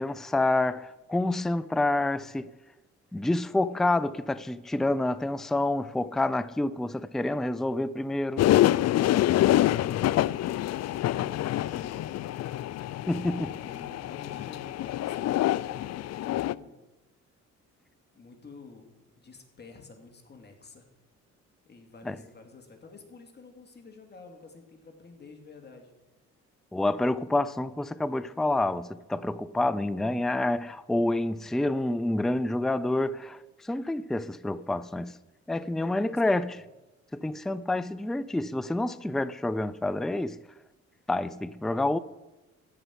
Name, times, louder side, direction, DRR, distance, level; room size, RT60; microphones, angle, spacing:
voice 1, 0.0-2.5 3.1-8.5 13.1-13.5 22.1-22.2 26.7-35.1 35.5-36.6 37.1-40.4 41.1-42.0, left 2 dB, ahead, 0.4 m, -28 dB
sound 1, 8.4-16.5, left 14 dB, 60° left, 0.4 m, -26 dB
voice 2, 10.7-12.2 13.4-16.8 18.1-20.9 21.6-25.9 35.6-36.6, left 4 dB, 35° left, 2.5 m, -49 dB
15.0 x 5.6 x 9.4 m
cardioid pair, 90°, 30 cm